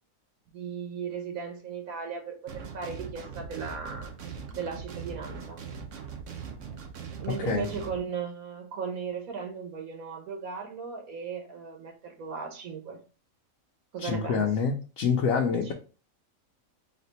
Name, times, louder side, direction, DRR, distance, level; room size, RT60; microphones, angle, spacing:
voice 1, 0.5-4.1 4.5-5.6 7.2-13.0 13.9-14.5 15.7-15.8, right 5 dB, 90° right, 3 dB, 1.4 m, -36 dB
sound 1, 2.5-8.0, right 6 dB, 65° right, 1.0 m, -41 dB
voice 2, 14.0-15.7, left 6 dB, 75° left, 0 dB, 1.0 m, -26 dB
4.3 x 2.4 x 4.0 m, 0.35 s
omnidirectional pair, 1.5 m